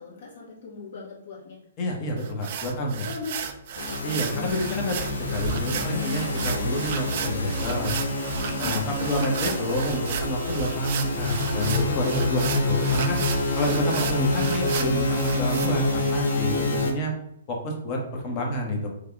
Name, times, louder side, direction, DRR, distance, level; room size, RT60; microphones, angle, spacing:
voice 1, 0.0-1.6 3.0-3.3 3.9-4.2 6.3-7.2 8.4-9.0, left 5 dB, 55° left, -4 dB, 1.4 m, -40 dB
voice 2, 1.8-3.1 4.0-7.9 8.6-13.2 13.6-17.1 17.5-18.9, equal, 35° left, 0 dB, 0.9 m, -28 dB
sound 1, 2.2-15.7, right 7 dB, 50° right, 0.4 m, -34 dB
sound 2, 3.7-16.9, left 2 dB, 70° left, 0.8 m, -27 dB
3.3 x 2.3 x 3.6 m, 0.72 s
figure-of-eight pair, 120°, 0 cm